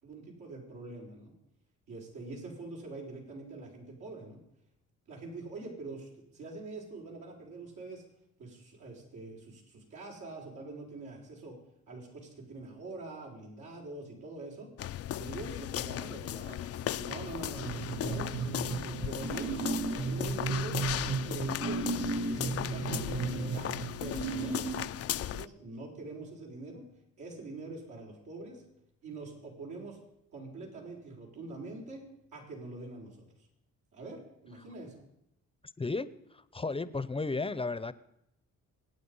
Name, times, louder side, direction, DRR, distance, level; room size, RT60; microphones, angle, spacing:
voice 1, 0.0-1.3 1.9-4.4 5.1-8.0 8.4-11.6 11.9-14.7 15.1-18.4 18.6-19.5 19.9-24.6 25.0-26.9 27.2-28.6 29.0-30.0 30.3-32.0 32.3-33.2 33.9-35.0, right 3 dB, 80° right, -2 dB, 5.6 m, -44 dB
sound 1, 14.8-25.5, left 12 dB, 50° left, 0.5 m, -37 dB
sound 2, 17.6-25.1, right 4 dB, 55° right, 6.0 m, -34 dB
voice 2, 35.8-37.9, left 3 dB, 20° left, 16 dB, 0.7 m, -34 dB
25.0 x 9.3 x 5.5 m, 0.80 s
cardioid pair, 90°, 30 cm